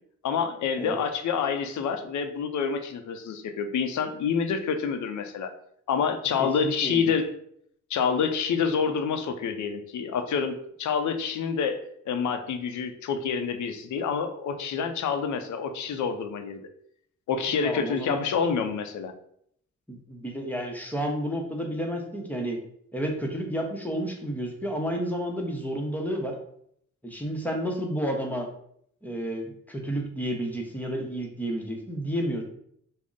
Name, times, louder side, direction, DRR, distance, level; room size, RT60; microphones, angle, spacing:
voice 1, 0.2-5.5 5.9-7.3 7.9-11.8 12.1-16.6 17.3-19.1, left 6 dB, 75° left, 7 dB, 0.5 m, -27 dB
voice 2, 6.4-7.1 17.6-18.2 19.9-22.6 22.9-26.4 27.0-28.5 29.0-32.4, equal, 5° left, 1 dB, 0.7 m, -31 dB
3.6 x 2.0 x 3.8 m, 0.68 s
cardioid pair, 100°, 29 cm